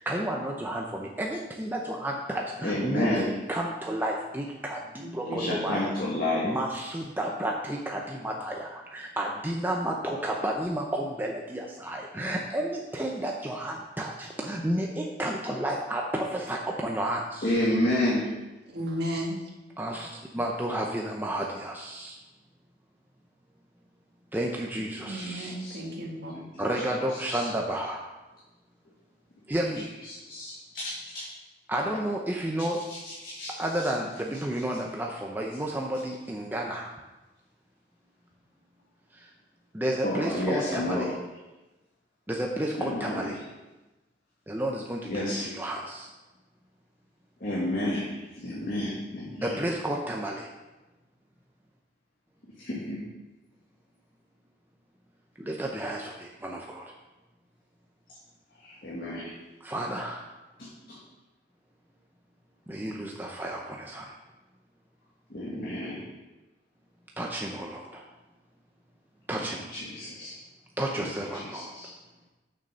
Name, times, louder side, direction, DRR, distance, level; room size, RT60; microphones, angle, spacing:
voice 1, 0.0-5.9 6.4-17.4 19.8-22.2 24.3-25.6 26.6-28.1 29.5-29.9 31.7-32.8 33.6-36.9 39.1-39.3 39.7-41.1 42.3-43.4 44.5-46.1 49.4-50.5 55.4-56.9 59.6-60.4 62.7-64.2 67.2-68.1 69.3-69.7 70.8-71.8, right 1 dB, 10° right, 0 dB, 0.6 m, -31 dB
voice 2, 2.6-3.4 5.2-6.6 17.4-18.3 24.8-24.9 25.1-25.8 26.3-27.5 29.7-31.3 32.9-33.9 34.3-34.4 40.0-41.1 42.7-43.4 45.1-45.5 47.4-49.6 52.6-53.0 58.5-59.4 60.6-61.0 65.3-66.0 69.4-70.3 71.0-71.9, left 1 dB, 55° left, -6 dB, 1.7 m, -31 dB
voice 3, 5.0-5.7 18.7-19.4 25.1-26.3, equal, 60° right, -1 dB, 1.8 m, -34 dB
6.6 x 6.3 x 5.6 m, 1.1 s
head